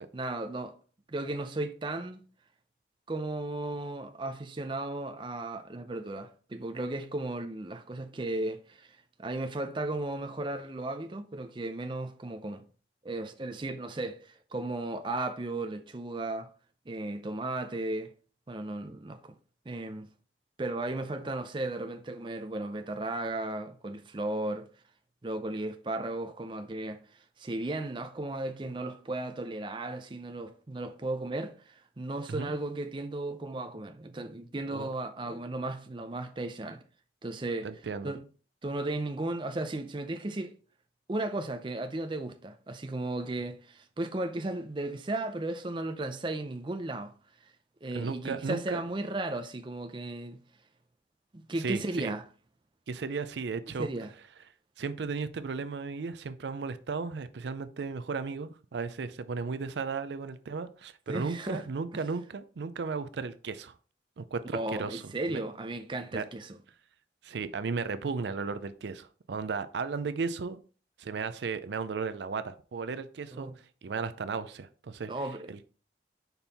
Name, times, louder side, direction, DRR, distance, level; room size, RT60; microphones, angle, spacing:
voice 1, 0.1-0.8 1.1-2.2 3.1-8.9 9.2-12.6 13.0-14.2 14.5-16.5 16.9-18.1 18.5-19.3 19.7-20.1 20.6-24.7 25.2-27.0 27.4-36.8 37.2-37.7 38.0-38.2 38.6-40.5 41.1-47.1 47.8-50.4 51.3-52.2 53.8-54.1 61.1-61.6 61.9-62.0 64.5-66.5 73.3-73.5 75.1-75.7, right 2 dB, 25° right, 0.5 m, -35 dB
voice 2, 37.6-38.1 47.9-48.8 51.6-52.1 52.9-53.9 54.8-63.8 64.2-65.4 66.1-66.2 67.2-70.6 71.0-73.5 73.8-75.7, right 4 dB, 80° right, 0.5 m, -35 dB
5.3 x 4.4 x 4.1 m
head